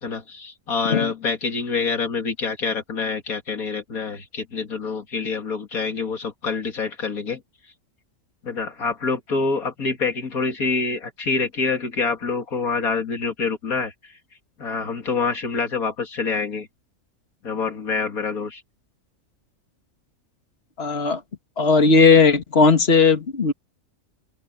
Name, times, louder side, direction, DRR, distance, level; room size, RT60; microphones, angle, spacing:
voice 1, 0.0-7.4 8.4-14.1 14.6-16.7 17.4-18.6, left 4 dB, 90° left, 2.8 m, -26 dB
voice 2, 20.8-21.2 21.6-23.5, left 4 dB, 45° left, 2.3 m, -16 dB
open air
omnidirectional pair, 1.5 m